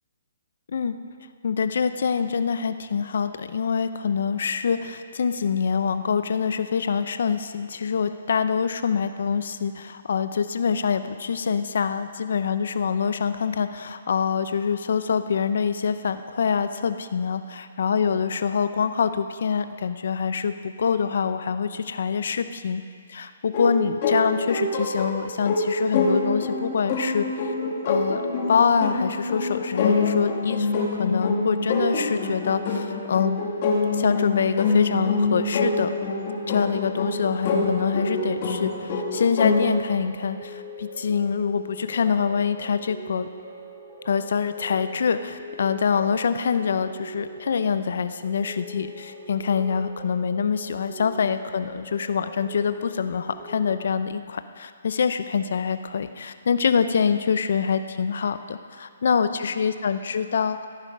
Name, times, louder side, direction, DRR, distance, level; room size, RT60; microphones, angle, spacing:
voice 1, 1.4-22.8 23.1-27.5 27.8-28.2 28.5-33.4 33.9-35.9 36.5-43.3 44.0-60.7, left 6 dB, 65° left, 11 dB, 0.6 m, -25 dB
sound 1, 23.5-39.6, left 3 dB, 40° left, 2.5 m, -25 dB
sound 2, 34.7-53.8, equal, 15° right, 2.8 m, -42 dB
14.0 x 11.0 x 5.4 m, 2.3 s
hypercardioid pair, 145°, 0 cm